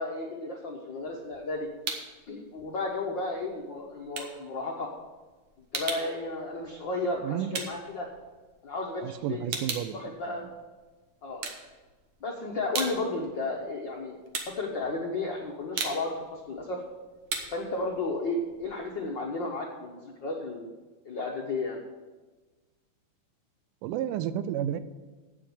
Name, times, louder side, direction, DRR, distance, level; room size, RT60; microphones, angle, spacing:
voice 1, 0.0-1.7 2.3-4.9 5.7-8.1 8.6-9.4 9.9-10.5 11.2-11.5 12.2-14.2 14.5-16.8 17.5-20.7 21.0-21.8, left 2 dB, 75° left, -1 dB, 1.1 m, -33 dB
sound 1, 1.0-2.2 2.6-8.8 9.1-10.9 11.3-12.2 12.5-19.2, right 5 dB, 60° right, 1.8 m, -38 dB
voice 2, 7.2-7.6 9.0-10.5 23.8-24.8, right 10 dB, 85° right, 13 dB, 2.2 m, -32 dB
8.6 x 7.5 x 7.0 m, 1.3 s
omnidirectional pair, 3.6 m